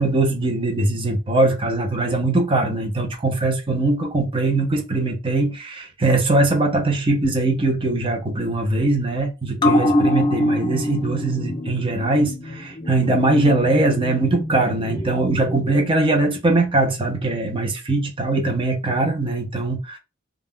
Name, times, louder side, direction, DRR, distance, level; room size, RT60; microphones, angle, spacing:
voice 1, 0.0-20.0, right 2 dB, 25° right, 0.6 m, -21 dB
sound 1, 9.6-16.5 16.8-16.9, left 1 dB, 25° left, 0.4 m, -25 dB
2.4 x 2.1 x 3.5 m
head